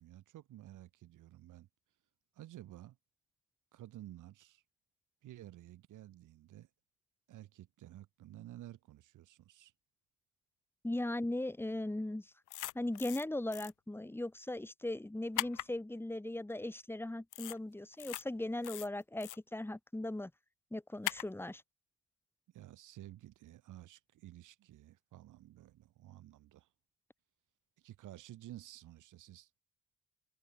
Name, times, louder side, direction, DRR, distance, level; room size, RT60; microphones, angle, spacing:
voice 1, 0.0-1.7 2.3-3.0 3.7-4.6 5.2-6.7 7.3-9.7 22.5-26.7 27.8-29.6, right 14 dB, 80° right, 5.0 m, -53 dB
voice 2, 10.8-12.3 12.7-20.3 20.7-21.6, left 1 dB, 5° left, 1.7 m, -38 dB
sound 1, 12.5-13.2 13.5-13.7 15.4-15.7 17.3-17.6 17.9-18.2 18.6-19.4 21.0-21.3, left 16 dB, 85° left, 1.5 m, -39 dB
cardioid pair, 90°, 30 cm